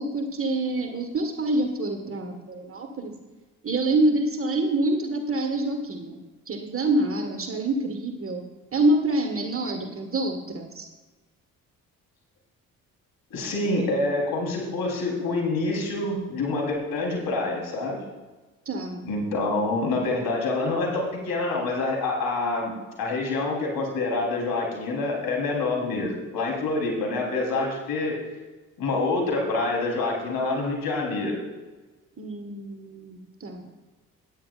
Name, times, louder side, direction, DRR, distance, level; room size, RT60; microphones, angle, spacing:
voice 1, 0.0-3.1 3.6-6.2 6.5-8.4 8.7-10.9 18.6-19.0 32.2-33.6, right 2 dB, 30° right, 4 dB, 1.6 m, -26 dB
voice 2, 13.3-18.0 19.0-28.2 28.8-31.4, left 2 dB, 55° left, -1 dB, 3.7 m, -26 dB
18.0 x 9.4 x 2.5 m, 1.3 s
figure-of-eight pair, 45°, 43 cm